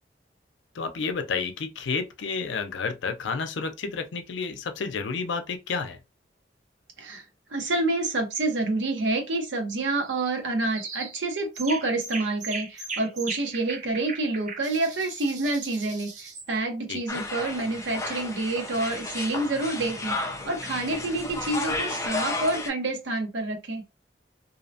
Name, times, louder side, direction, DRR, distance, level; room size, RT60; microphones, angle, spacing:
voice 1, 0.7-6.0 16.9-17.2, left 5 dB, 85° left, 0.5 m, -31 dB
voice 2, 7.5-16.1 16.5-23.8, right 2 dB, 85° right, 0.8 m, -28 dB
sound 1, 10.0-10.4 10.7-11.2 11.5-16.5, right 4 dB, 40° right, 0.6 m, -38 dB
sound 2, 17.1-22.7, left 2 dB, 15° left, 0.4 m, -32 dB
2.7 x 2.0 x 2.6 m
head